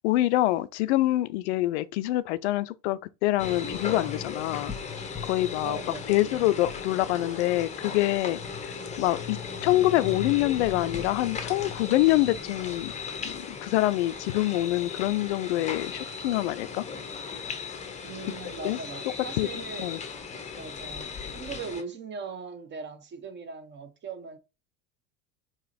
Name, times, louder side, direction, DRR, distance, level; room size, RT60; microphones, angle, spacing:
voice 1, 0.0-4.7 5.2-5.8 6.1-8.4 9.0-12.9 13.2-16.8 18.2-18.8 19.4-20.0, left 16 dB, 50° left, 0.5 m, -26 dB
sound 1, 3.4-21.8, left 5 dB, 15° left, 0.7 m, -37 dB
voice 2, 5.6-6.5 8.7-9.0 18.0-19.9 20.6-24.4, right 5 dB, 25° right, 0.7 m, -40 dB
4.8 x 3.0 x 2.6 m
figure-of-eight pair, 80°, 47 cm